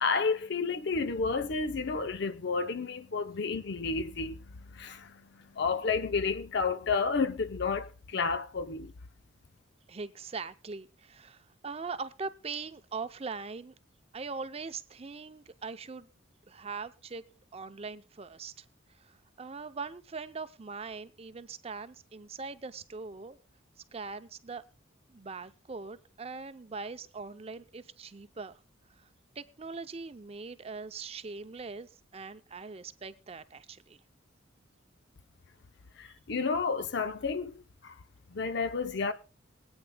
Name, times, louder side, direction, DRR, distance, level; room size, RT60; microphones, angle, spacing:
voice 1, 0.0-8.9 36.0-37.5 37.8-37.9 38.3-39.1, left 4 dB, 55° left, 0.6 m, -31 dB
voice 2, 9.9-13.7 14.1-16.1 16.5-17.2 17.5-18.6 19.0-23.4 23.9-24.6 25.1-28.6 29.0-29.1 29.4-34.0 36.1-36.2, right 4 dB, 30° right, 0.5 m, -41 dB
23.5 x 8.9 x 2.2 m
head